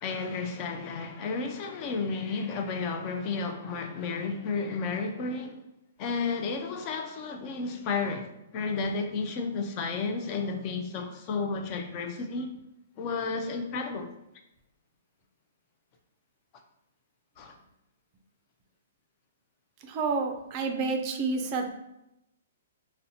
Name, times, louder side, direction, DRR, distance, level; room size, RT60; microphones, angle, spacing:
voice 1, 0.0-5.6 6.0-12.5 13.0-14.1 17.4-17.5, left 4 dB, 35° left, 0.4 m, -32 dB
voice 2, 19.8-21.7, right 4 dB, 35° right, 0.4 m, -29 dB
4.0 x 2.1 x 2.6 m
hypercardioid pair, 150°, 0 cm